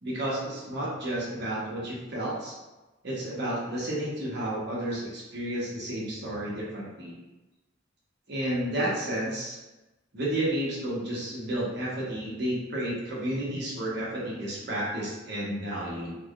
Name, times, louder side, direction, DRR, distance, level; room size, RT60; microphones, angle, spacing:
voice 1, 0.0-2.5 3.0-7.1 8.3-9.6 10.1-16.2, right 1 dB, 60° right, -6 dB, 0.9 m, -31 dB
3.4 x 2.1 x 2.4 m, 1.1 s
head